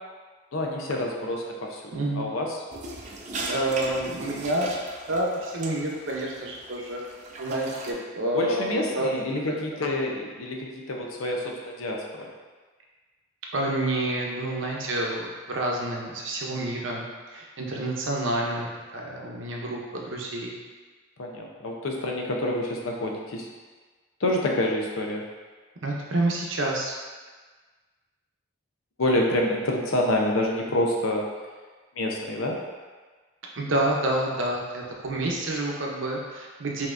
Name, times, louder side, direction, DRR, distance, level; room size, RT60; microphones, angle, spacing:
voice 1, 0.5-2.6 8.3-12.3 16.5-16.6 21.2-23.5 24.2-25.2 29.0-31.3 31.9-32.6, left 1 dB, 90° left, 0 dB, 0.6 m, -27 dB
voice 2, 1.9-2.3 3.5-4.8 5.1-7.0 7.4-9.1 13.5-17.1 17.3-18.7 18.9-20.5 25.8-27.0 33.5-36.9, right 1 dB, 70° right, -2 dB, 0.7 m, -28 dB
sound 1, 2.7-7.9, right 2 dB, 35° right, 0.4 m, -38 dB
5.5 x 2.8 x 2.5 m, 1.4 s
head